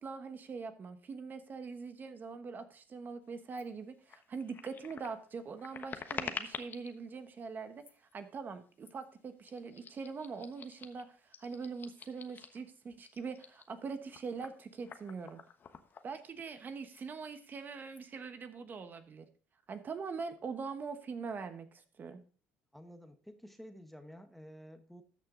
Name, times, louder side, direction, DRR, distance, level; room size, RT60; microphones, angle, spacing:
voice 1, 0.0-15.4 16.0-19.3 19.7-22.2, right 5 dB, 40° right, 9 dB, 1.1 m, -43 dB
sound 1, 3.5-3.6 4.0-6.9 7.7-8.1 8.8-9.0 9.4-12.6 13.0-16.6 16.9-17.0 17.4-18.0, left 6 dB, 45° left, 1.2 m, -47 dB
voice 2, 22.7-25.0, equal, 5° left, 8 dB, 1.2 m, -51 dB
13.0 x 6.0 x 3.8 m, 0.39 s
supercardioid pair, 90°, 5 cm